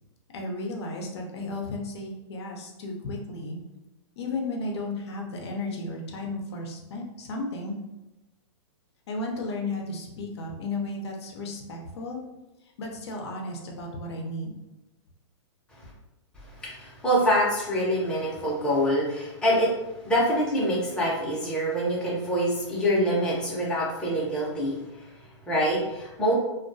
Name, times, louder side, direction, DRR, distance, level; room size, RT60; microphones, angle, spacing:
voice 1, 0.3-3.6 4.2-7.7 9.1-12.2 12.6-14.5, left 2 dB, 65° left, 0 dB, 0.6 m, -34 dB
voice 2, 16.4-25.1 25.4-26.3, equal, 5° left, -7 dB, 0.7 m, -25 dB
2.2 x 2.2 x 2.6 m, 0.97 s
hypercardioid pair, 140°, 15 cm